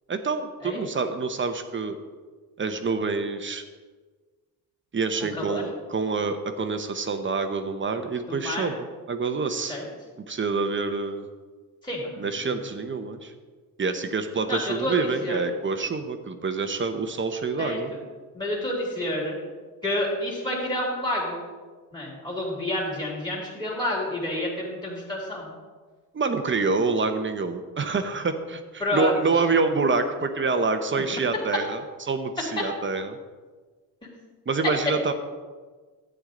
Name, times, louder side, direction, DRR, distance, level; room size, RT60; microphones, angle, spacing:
voice 1, 0.1-2.0 2.6-3.6 4.9-9.8 10.2-11.3 12.2-13.3 13.8-17.9 26.1-33.2 34.5-35.1, right 4 dB, 30° right, 7 dB, 1.0 m, -27 dB
voice 2, 5.3-5.6 8.3-8.7 9.7-9.8 11.8-12.3 14.5-15.4 17.6-17.8 18.3-19.4 19.8-21.4 21.9-25.5 28.8-29.1, left 1 dB, 10° left, -5 dB, 3.0 m, -29 dB
11.5 x 9.0 x 3.9 m, 1.4 s
cardioid pair, 95°, 38 cm